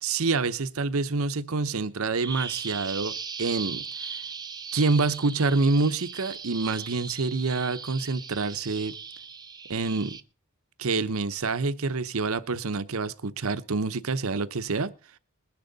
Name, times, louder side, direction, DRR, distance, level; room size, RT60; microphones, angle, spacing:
voice 1, 0.0-4.2 4.7-8.9 9.7-10.2 10.8-14.9, right 3 dB, 70° right, 0.8 m, -27 dB
Bird vocalization bird call bird song, 2.2-10.2, right 6 dB, 20° right, 0.6 m, -38 dB
20.5 x 10.5 x 4.0 m
head